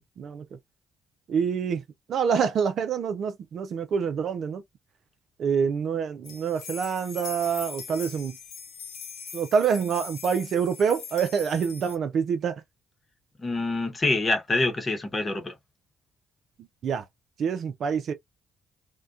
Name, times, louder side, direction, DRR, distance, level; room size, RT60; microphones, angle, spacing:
voice 1, 1.3-1.8 2.1-4.6 5.4-8.4 9.3-12.6 16.8-17.0 17.4-18.1, right 6 dB, 60° right, 0.4 m, -26 dB
sound 1, 6.2-12.0, left 6 dB, 75° left, 0.7 m, -41 dB
voice 2, 13.4-15.6, left 2 dB, 35° left, 0.9 m, -26 dB
2.2 x 2.2 x 2.5 m
hypercardioid pair, 55°, 0 cm